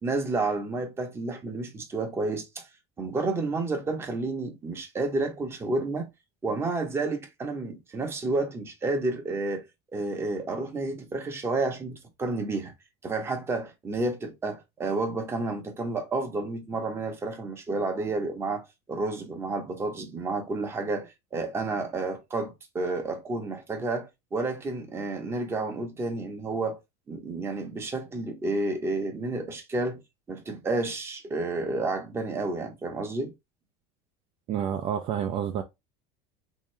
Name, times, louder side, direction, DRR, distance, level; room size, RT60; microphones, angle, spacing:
voice 1, 0.0-2.7 3.0-6.1 6.4-9.6 9.9-12.7 13.0-26.8 27.1-30.0 30.3-33.3, right 3 dB, 15° right, 0.8 m, -30 dB
voice 2, 34.5-35.6, right 9 dB, 40° right, 0.5 m, -29 dB
3.5 x 2.8 x 3.2 m
cardioid pair, 160°, 16 cm